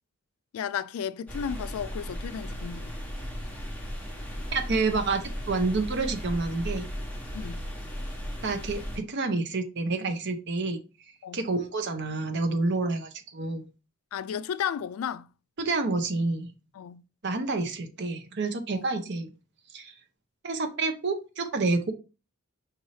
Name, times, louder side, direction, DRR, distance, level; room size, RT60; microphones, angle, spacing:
voice 1, 0.5-2.9 7.3-7.7 11.2-11.4 14.1-15.3 16.7-17.0 18.7-18.9, left 8 dB, 85° left, 0.3 m, -34 dB
sound 1, 1.3-9.0, equal, 5° left, 1.1 m, -36 dB
voice 2, 4.5-5.2 5.5-6.9 8.4-10.8 11.3-13.6 15.6-16.5 17.2-19.3 19.7-19.9 20.4-21.9, right 3 dB, 55° right, 0.9 m, -28 dB
5.4 x 2.8 x 3.1 m
head